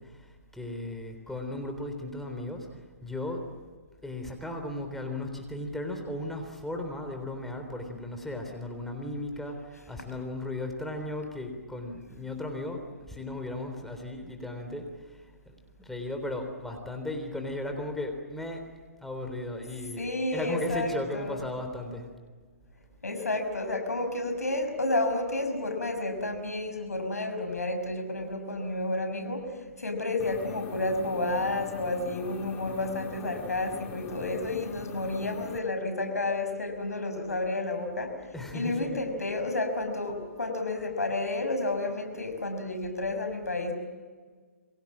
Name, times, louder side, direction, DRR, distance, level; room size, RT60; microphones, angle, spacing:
voice 1, 0.0-3.5 4.0-18.6 19.0-22.1 38.3-39.0, left 1 dB, 5° left, 4 dB, 3.6 m, -36 dB
voice 2, 20.0-21.4 23.0-43.7, left 2 dB, 90° left, 6 dB, 6.1 m, -31 dB
sound 1, 30.2-35.6, left 7 dB, 20° left, 2.3 m, -44 dB
29.5 x 23.0 x 7.4 m, 1.5 s
hypercardioid pair, 135°, 8 cm